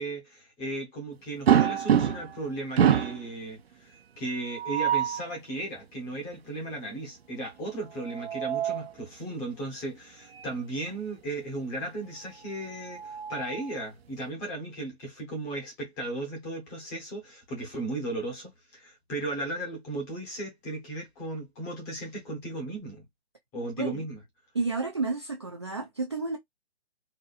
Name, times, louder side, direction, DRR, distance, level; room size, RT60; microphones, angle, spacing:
voice 1, 0.0-23.0 23.5-24.2, right 2 dB, 10° left, 0.7 m, -36 dB
sound 1, 1.5-2.4 2.8-3.2 4.5-5.2 7.9-8.9 10.3-10.5 10.9-11.0 12.5-13.8, right 9 dB, 65° right, 0.7 m, -26 dB
voice 2, 24.5-26.4, right 3 dB, 25° right, 0.4 m, -31 dB
4.1 x 2.5 x 2.3 m
hypercardioid pair, 160°, 33 cm